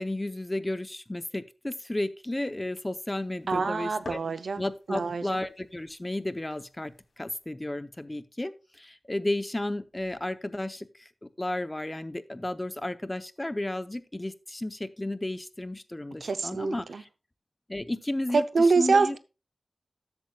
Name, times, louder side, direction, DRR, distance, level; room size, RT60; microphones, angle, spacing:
voice 1, 0.0-4.2 4.6-17.1 17.7-18.4 18.8-19.2, left 1 dB, 20° left, 12 dB, 0.8 m, -33 dB
sound 1, 2.4-7.5, left 3 dB, 75° left, 2.6 m, -50 dB
voice 2, 3.5-4.6 4.9-5.4 16.2-17.0 18.3-19.2, right 4 dB, 85° right, 12 dB, 0.6 m, -25 dB
13.0 x 8.2 x 2.3 m, 0.29 s
wide cardioid pair, 65°, 0 cm